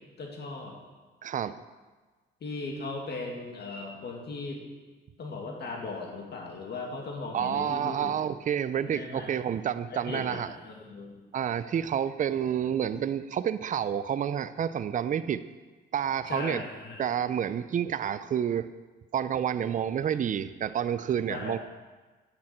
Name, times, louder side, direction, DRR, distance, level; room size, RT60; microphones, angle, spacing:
voice 1, 0.2-0.8 2.4-4.6 5.2-8.1 8.9-9.4 9.9-11.2 16.3-17.0 21.3-21.6, left 3 dB, 55° left, 0 dB, 2.2 m, -38 dB
voice 2, 1.2-1.6 7.3-10.5 11.3-15.4 15.9-16.6 17.0-18.7 19.1-21.6, right 9 dB, 40° right, 14 dB, 0.5 m, -29 dB
10.0 x 8.7 x 4.4 m, 1.3 s
cardioid pair, 90°, 20 cm